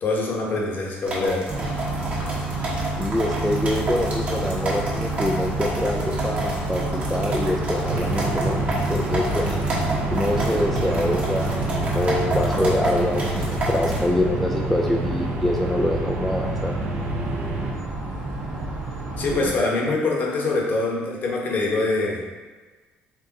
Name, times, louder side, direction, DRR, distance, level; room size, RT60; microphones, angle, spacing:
voice 1, 0.0-1.5 19.2-22.2, left 3 dB, 50° left, -2 dB, 1.0 m, -24 dB
sound 1, 1.1-14.1, right 1 dB, 35° right, 1.1 m, -31 dB
sound 2, 1.5-19.5, right 2 dB, 75° right, 1.4 m, -29 dB
voice 2, 3.0-6.8 7.1-8.6 8.9-9.6 10.1-16.7 19.3-19.4, left 1 dB, 5° left, 0 dB, 0.3 m, -25 dB
sound 3, 7.9-17.7, right 2 dB, 60° right, 0.7 m, -29 dB
4.6 x 2.5 x 3.9 m, 1.3 s
cardioid pair, 120°, 4 cm